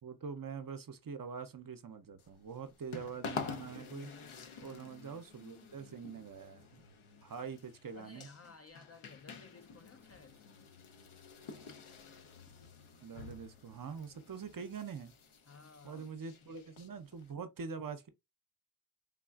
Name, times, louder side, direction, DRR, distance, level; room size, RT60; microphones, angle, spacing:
voice 1, 0.0-4.1 4.6-6.8 7.2-8.3 13.0-15.1 15.8-18.1, right 6 dB, 45° right, 0.5 m, -44 dB
sound 1, 2.2-17.3, left 5 dB, 80° left, 0.7 m, -49 dB
voice 2, 4.6-5.1 7.9-10.4 15.5-16.3, left 4 dB, 35° left, 0.4 m, -57 dB
3.4 x 2.4 x 2.3 m
wide cardioid pair, 85°, 48 cm